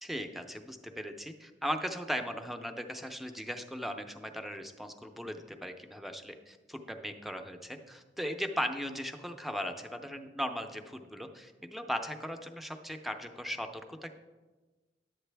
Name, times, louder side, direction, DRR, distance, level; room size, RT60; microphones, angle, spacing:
voice 1, 0.0-14.2, equal, ahead, 6 dB, 0.5 m, -38 dB
11.0 x 8.1 x 3.4 m, 1.3 s
head